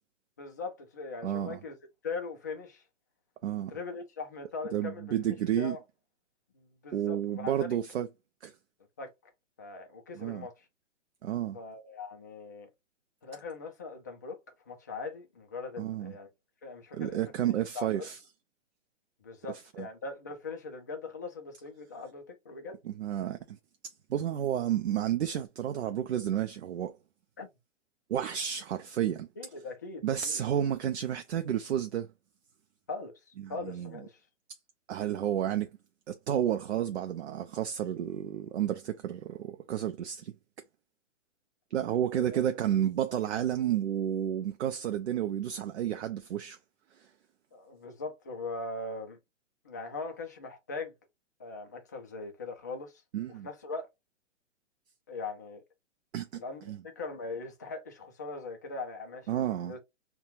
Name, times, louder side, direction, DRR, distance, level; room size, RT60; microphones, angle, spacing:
voice 1, 0.4-1.8 2.0-2.8 3.7-5.1 5.6-5.8 6.5-7.7 9.0-9.1 9.6-10.7 11.5-12.7 13.2-14.4 14.7-16.3 16.6-18.1 19.2-22.8 27.4-27.5 29.4-30.4 32.9-34.2 42.1-42.4 47.5-49.2 49.6-50.9 51.4-53.0 53.3-53.9 55.1-55.6 56.3-59.8, left 3 dB, 15° left, 0.3 m, -40 dB
voice 2, 1.2-1.6 3.4-3.7 4.7-5.8 6.9-8.1 8.4-8.5 10.2-10.5 11.2-11.6 15.8-16.1 16.9-18.2 19.8-19.9 22.8-23.6 24.1-27.0 28.1-29.3 30.0-32.1 33.4-33.9 34.9-35.7 36.1-40.3 41.7-46.6 47.0-47.1 53.1-53.5 56.1-56.4 56.7-56.8 59.3-59.7, right 10 dB, 65° right, 0.5 m, -31 dB
5.4 x 2.2 x 2.5 m
figure-of-eight pair, 125°, 37 cm